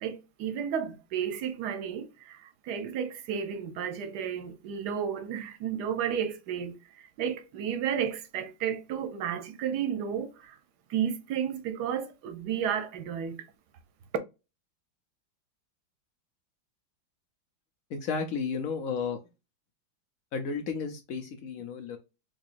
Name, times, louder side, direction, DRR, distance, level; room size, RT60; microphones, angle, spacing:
voice 1, 0.0-6.8 7.2-10.6 10.9-13.4, right 8 dB, 65° right, 1.1 m, -32 dB
voice 2, 17.9-19.2 20.3-22.0, left 5 dB, 75° left, 0.7 m, -33 dB
3.6 x 3.2 x 2.5 m
omnidirectional pair, 2.2 m